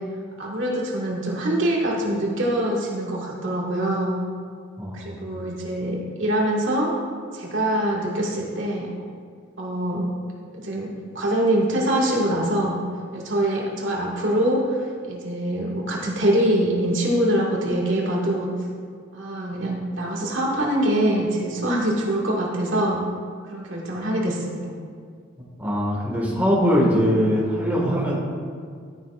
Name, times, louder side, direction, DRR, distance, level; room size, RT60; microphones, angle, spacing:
voice 1, 0.4-4.2 4.9-6.9 7.3-8.9 9.6-10.1 10.5-10.9 11.1-12.8 13.1-18.5 19.1-23.0 23.5-24.7, right 1 dB, 70° right, -3 dB, 2.0 m, -24 dB
voice 2, 4.8-5.2 25.6-28.1, equal, 10° right, -4 dB, 1.8 m, -21 dB
13.0 x 10.0 x 2.5 m, 2.1 s
head